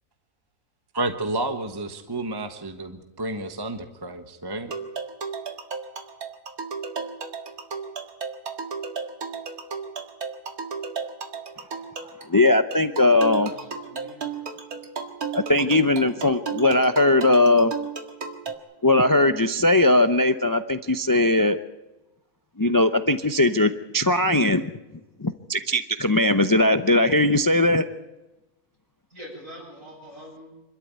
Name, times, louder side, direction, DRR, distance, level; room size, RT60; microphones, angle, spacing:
voice 1, 0.9-4.7, right 2 dB, 15° right, 7 dB, 1.2 m, -30 dB
sound 1, 4.7-18.5, right 5 dB, 70° right, 2.3 m, -34 dB
voice 2, 12.3-13.5 15.3-17.7 18.8-21.6 22.6-24.7 25.2-27.9, left 2 dB, 25° left, 10 dB, 0.4 m, -19 dB
voice 3, 13.1-14.4 29.1-30.5, equal, 55° right, -1 dB, 8.6 m, -44 dB
26.0 x 13.0 x 9.4 m, 1.0 s
omnidirectional pair, 1.6 m